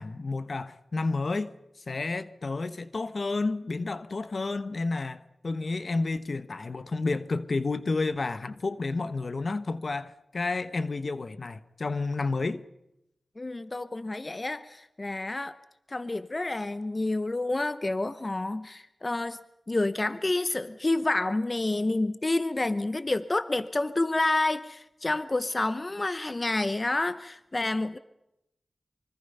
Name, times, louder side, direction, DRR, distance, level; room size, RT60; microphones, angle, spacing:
voice 1, 0.0-1.5 1.9-12.6, left 3 dB, 65° left, 1.0 m, -31 dB
voice 2, 13.4-15.6 15.9-19.4 19.7-28.0, left 2 dB, 40° left, 0.8 m, -29 dB
24.5 x 24.5 x 5.5 m
cardioid pair, 45°, 0 cm